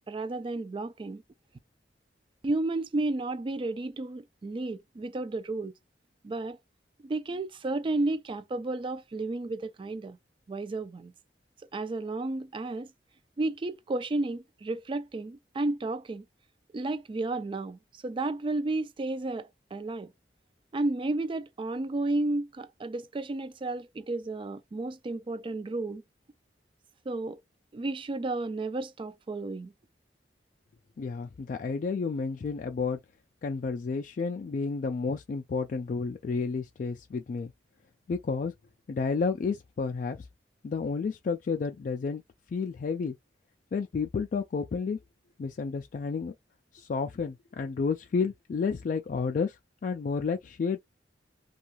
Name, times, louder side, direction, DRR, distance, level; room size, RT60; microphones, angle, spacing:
voice 1, 0.1-1.2 2.4-5.7 6.2-6.6 7.0-10.2 10.5-11.1 11.7-12.9 13.4-16.2 16.7-20.1 20.7-26.0 27.1-27.4 27.7-29.7, right 2 dB, 30° right, 0.3 m, -32 dB
voice 2, 31.0-33.0 33.4-37.5 38.1-38.5 38.9-40.3 40.6-42.2 42.5-43.2 43.7-45.0 45.4-46.3 46.7-50.8, left 5 dB, 45° left, 0.3 m, -31 dB
2.6 x 2.3 x 2.9 m
head